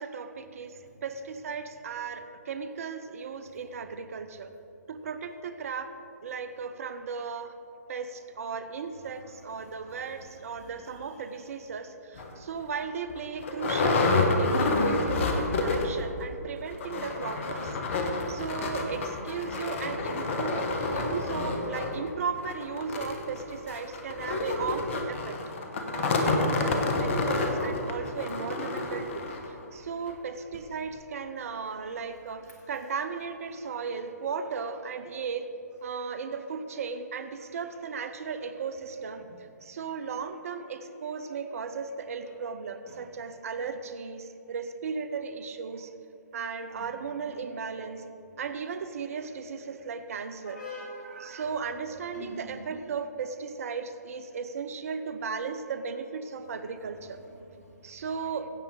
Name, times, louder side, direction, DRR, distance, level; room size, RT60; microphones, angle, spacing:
voice 1, 0.0-4.5 4.9-5.9 6.2-7.5 7.9-25.4 25.9-35.5 35.8-39.2 39.6-45.9 46.3-48.0 48.4-50.6 51.0-57.2 57.8-58.5, right 5 dB, 55° right, 10 dB, 0.6 m, -36 dB
voice 2, 9.1-11.1 15.0-15.4 16.5-18.4 18.9-19.0 19.5-19.8 20.6-20.7 21.9-22.0 31.6-32.0 32.5-32.6 39.2-39.3 42.3-42.4 42.9-43.0 46.7-46.9 50.4-51.4 52.1-52.5 56.8-58.0 58.3-58.4, left 1 dB, 85° left, -2 dB, 2.2 m, -49 dB
sound 1, 12.2-12.3 12.8-12.9 13.1-16.1 16.3-16.4 16.7-29.5 30.1-30.2 30.5-30.6, left 3 dB, 50° left, 1.3 m, -29 dB
16.0 x 7.3 x 3.8 m, 2.7 s
figure-of-eight pair, 130°, 9 cm